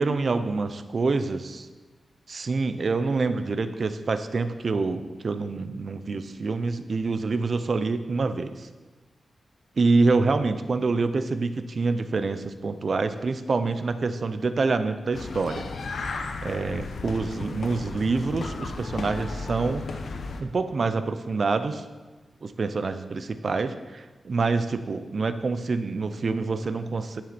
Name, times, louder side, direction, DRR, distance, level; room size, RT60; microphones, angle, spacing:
voice 1, 0.0-1.7 2.3-8.7 9.8-15.7 16.4-19.9 20.4-21.8 22.4-27.2, right 3 dB, 50° right, 10 dB, 0.6 m, -26 dB
sound 1, 15.1-20.4, left 3 dB, 75° left, 1.0 m, -34 dB
10.0 x 9.5 x 4.3 m, 1.3 s
wide cardioid pair, 125°, 0 cm